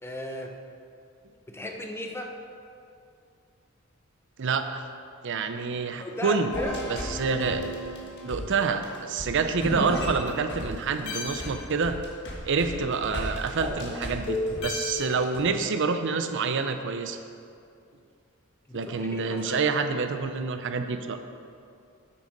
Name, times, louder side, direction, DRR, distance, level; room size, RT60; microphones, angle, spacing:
voice 1, 0.0-0.5 1.5-2.3 6.0-6.8 18.7-19.6, left 1 dB, 10° left, 2 dB, 0.7 m, -36 dB
voice 2, 4.4-4.8 5.2-6.5 6.9-7.6 8.2-12.0 12.4-17.2 18.7-21.2, right 4 dB, 60° right, 8 dB, 0.6 m, -27 dB
sound 1, 6.5-10.7 11.1-15.4, left 1 dB, 55° left, 1.6 m, -33 dB
8.4 x 6.6 x 5.3 m, 2.4 s
head